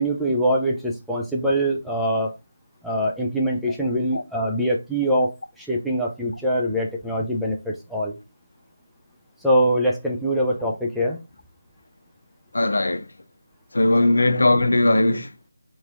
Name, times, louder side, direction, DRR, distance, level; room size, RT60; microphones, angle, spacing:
voice 1, 0.0-2.4 2.8-8.1 9.4-11.2 14.0-14.1, equal, ahead, 0.3 m, -23 dB
voice 2, 12.5-13.1 13.7-15.3, left 2 dB, 70° left, 0.6 m, -19 dB
4.3 x 3.1 x 2.5 m
figure-of-eight pair, 170°, 0 cm